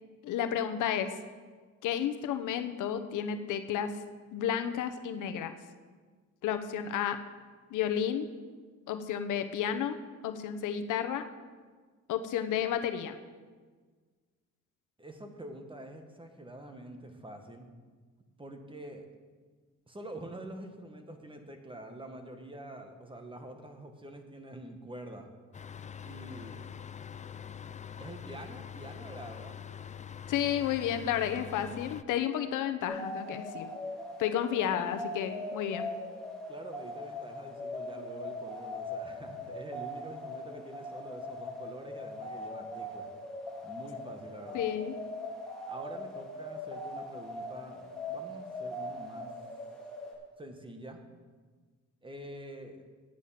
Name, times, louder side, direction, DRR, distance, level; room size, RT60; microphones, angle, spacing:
voice 1, 0.2-1.1 1.8-3.9 4.3-5.5 6.4-7.2 7.7-8.3 8.9-10.0 10.2-11.3 12.1-13.2 30.3-33.7 34.2-35.9 44.5-44.9, left 9 dB, 85° left, 8 dB, 0.9 m, -31 dB
voice 2, 15.0-17.7 18.4-19.1 19.9-25.3 26.0-26.7 28.0-29.6 36.5-43.1 43.6-44.6 45.7-49.3 50.4-51.0 52.0-52.8, right 1 dB, 15° right, 5 dB, 1.5 m, -46 dB
sound 1, 25.5-32.0, left 8 dB, 25° left, 0.4 m, -44 dB
sound 2, 32.8-50.1, left 1 dB, ahead, 3.1 m, -40 dB
10.0 x 9.1 x 5.8 m, 1.5 s
cardioid pair, 90°, 30 cm